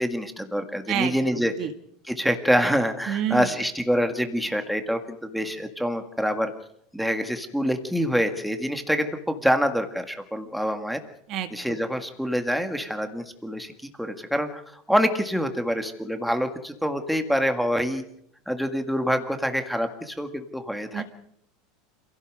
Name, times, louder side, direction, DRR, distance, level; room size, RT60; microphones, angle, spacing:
voice 1, 0.0-1.5 2.1-6.5 6.9-11.0 11.5-13.7 14.0-14.6 14.9-18.0 18.5-21.0, equal, ahead, 6 dB, 1.8 m, -26 dB
voice 2, 0.9-1.7 3.1-3.5 11.3-11.8 20.9-21.0, right 10 dB, 40° right, 9 dB, 1.7 m, -29 dB
27.5 x 17.0 x 6.5 m, 0.71 s
supercardioid pair, 165°, 0 cm